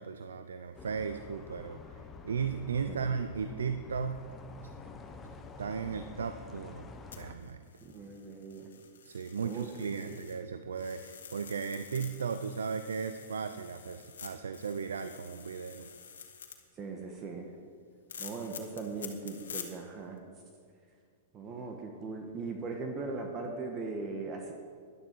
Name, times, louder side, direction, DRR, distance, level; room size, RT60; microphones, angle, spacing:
voice 1, 0.0-2.0 2.2-4.2 5.6-6.9 7.2-7.7 9.0-15.9, right 6 dB, 90° right, 9 dB, 0.5 m, -36 dB
sound 1, 0.7-7.3, left 4 dB, 20° left, 1.0 m, -48 dB
sound 2, 7.1-10.4 10.7-16.6 18.1-19.7 20.2-20.3, left 7 dB, 85° left, 1.6 m, -48 dB
voice 2, 7.8-8.7 9.4-10.2 16.7-17.5 18.2-20.2 21.3-24.5, right 3 dB, 30° right, 2 dB, 1.3 m, -39 dB
13.0 x 11.0 x 4.6 m, 2.1 s
hypercardioid pair, 125°, 0 cm